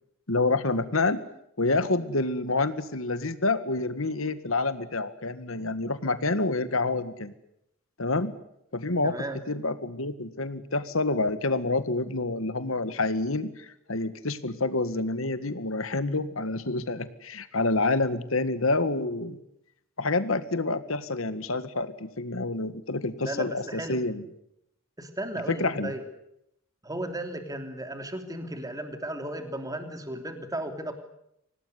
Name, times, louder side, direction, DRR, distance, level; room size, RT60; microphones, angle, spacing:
voice 1, 0.3-1.2 1.6-7.3 8.0-8.3 8.7-19.4 20.0-24.2 25.5-25.9, left 3 dB, 75° left, 12 dB, 1.9 m, -28 dB
voice 2, 9.0-9.4 23.2-24.0 25.0-26.0 26.8-30.9, right 1 dB, 15° right, 6 dB, 3.0 m, -35 dB
25.5 x 18.5 x 9.7 m, 0.79 s
head